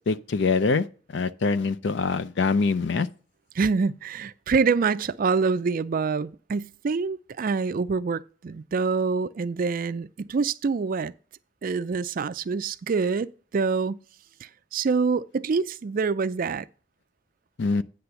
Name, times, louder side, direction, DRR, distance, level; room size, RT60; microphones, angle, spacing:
voice 1, 0.1-0.9 1.1-3.1 17.6-17.8, left 4 dB, 60° left, 0.5 m, -24 dB
voice 2, 3.5-11.1 11.6-14.0 14.4-16.7, right 4 dB, 45° right, 0.4 m, -26 dB
9.6 x 3.4 x 6.9 m
head